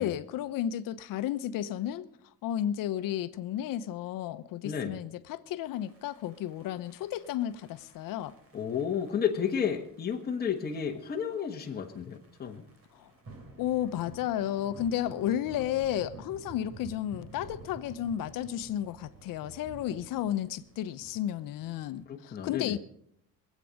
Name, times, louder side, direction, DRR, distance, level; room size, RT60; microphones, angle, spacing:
voice 1, 0.0-8.4 12.9-13.1 13.6-22.8, left 11 dB, 65° left, 0.9 m, -33 dB
voice 2, 4.6-5.0 8.5-12.6 22.1-22.8, left 7 dB, 25° left, 1.4 m, -32 dB
sound 1, 5.7-22.0, right 3 dB, 40° right, 3.3 m, -51 dB
21.0 x 8.5 x 6.5 m
cardioid pair, 130°, 35 cm